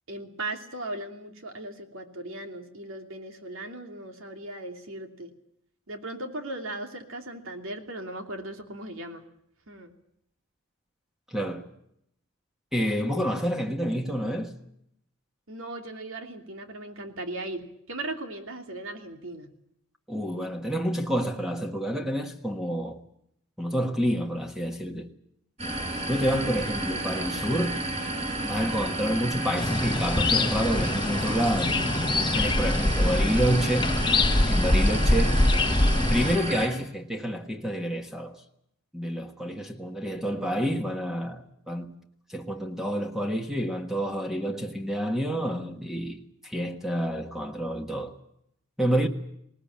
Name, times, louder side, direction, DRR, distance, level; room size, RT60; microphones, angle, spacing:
voice 1, 0.1-5.3 5.9-9.2 9.7-9.9 15.5-19.5, right 2 dB, 65° right, 2.8 m, -38 dB
voice 2, 11.3-11.7 12.7-14.5 20.1-23.0 23.6-25.1 26.1-27.8 28.4-31.8 32.3-33.9 34.5-35.4 36.1-38.4 38.9-42.0 42.3-48.1 48.8-49.1, equal, ahead, 1.4 m, -28 dB
sound 1, 25.6-36.7, right 1 dB, 30° right, 6.3 m, -31 dB
sound 2, 29.6-36.4, left 2 dB, 20° left, 0.9 m, -24 dB
19.5 x 19.5 x 8.8 m
head